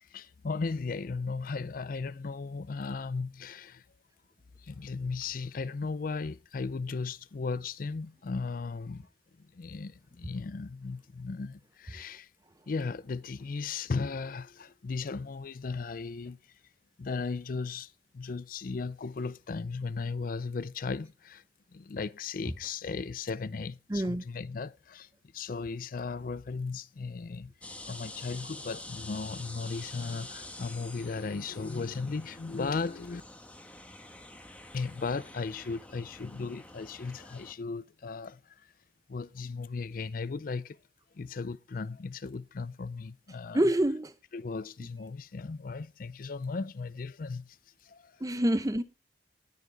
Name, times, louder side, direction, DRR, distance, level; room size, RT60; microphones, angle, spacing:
voice 1, 0.0-3.8 4.6-9.1 9.4-12.3 12.7-16.4 17.0-21.4 21.7-27.5 27.9-33.2 34.7-38.7 39.1-40.8 41.1-43.7 44.3-47.6 47.8-48.2, left 4 dB, 50° left, 0.4 m, -36 dB
voice 2, 23.9-24.2 43.5-44.1 48.2-48.8, right 1 dB, 20° right, 0.8 m, -26 dB
sound 1, 27.6-37.5, left 2 dB, 10° left, 1.3 m, -47 dB
19.5 x 6.6 x 3.4 m
head